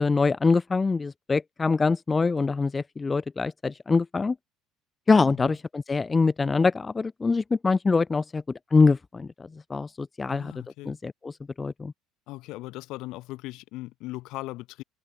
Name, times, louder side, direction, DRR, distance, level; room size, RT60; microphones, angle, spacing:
voice 1, 0.0-4.4 5.1-8.4 8.7-9.3 9.7-10.5 10.9-11.3 11.6-11.9, left 4 dB, 15° left, 0.5 m, -24 dB
voice 2, 10.3-11.0 12.3-14.8, left 19 dB, 65° left, 3.0 m, -38 dB
cardioid pair, 140°, 0 cm